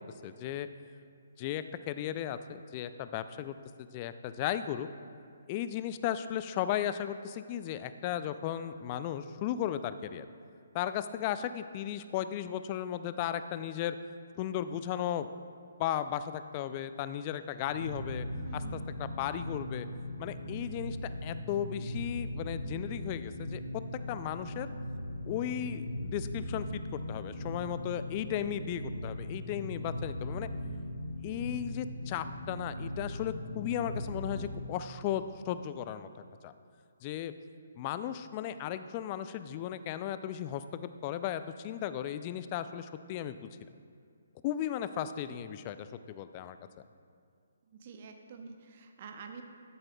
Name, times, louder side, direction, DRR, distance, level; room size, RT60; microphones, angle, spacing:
voice 1, 0.2-0.7 1.4-4.9 5.5-10.3 10.7-14.0 14.4-15.3 15.8-18.3 18.5-19.9 20.2-23.8 24.1-24.7 25.3-30.5 31.2-36.1 36.4-36.5 37.0-37.3 37.8-43.5 44.4-46.6, left 10 dB, 30° left, 12 dB, 0.3 m, -35 dB
sound 1, 17.6-34.6, left 1 dB, 70° left, 1.0 m, -39 dB
voice 2, 18.4-18.9 47.7-49.4, right 5 dB, 40° right, 5 dB, 0.7 m, -48 dB
13.5 x 7.6 x 2.3 m, 2.3 s
figure-of-eight pair, 140°, 0 cm